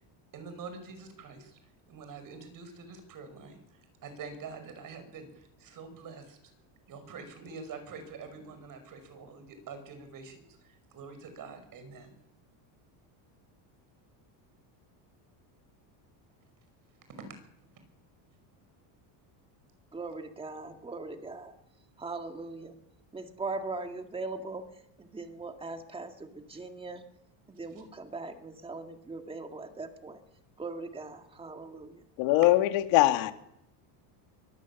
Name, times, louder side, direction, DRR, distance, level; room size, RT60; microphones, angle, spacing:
voice 1, 0.3-6.4 6.9-12.1 17.2-17.3, right 4 dB, 40° right, 8 dB, 5.8 m, -46 dB
voice 2, 19.9-21.6 22.0-22.8 23.1-24.6 25.0-27.0 27.5-30.2 30.6-32.0, right 3 dB, 10° right, 5 dB, 2.0 m, -40 dB
voice 3, 32.2-33.3, left 16 dB, 70° left, 7 dB, 2.3 m, -22 dB
23.5 x 19.5 x 7.3 m, 0.79 s
cardioid pair, 145°, 49 cm